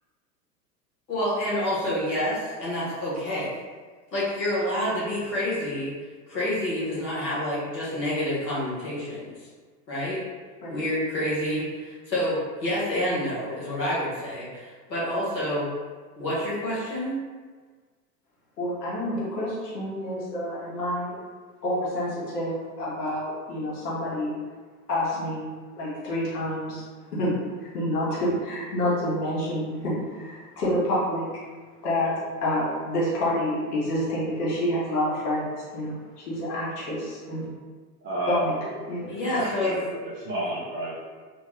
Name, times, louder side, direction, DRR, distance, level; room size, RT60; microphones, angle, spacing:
voice 1, 1.1-3.5 4.1-5.9 6.3-9.3 9.9-10.3 10.7-15.7 16.2-17.2 39.1-39.8, left 1 dB, 85° left, -8 dB, 1.1 m, -28 dB
voice 2, 18.6-21.2 21.6-24.3 24.9-25.4 25.8-26.8 27.1-31.3 31.8-32.1 32.4-37.4 38.3-39.1, left 1 dB, 70° left, -7 dB, 1.4 m, -28 dB
voice 3, 38.0-38.7 39.3-40.9, right 1 dB, 20° right, -9 dB, 0.3 m, -31 dB
2.8 x 2.3 x 3.1 m, 1.4 s
figure-of-eight pair, 85°, 49 cm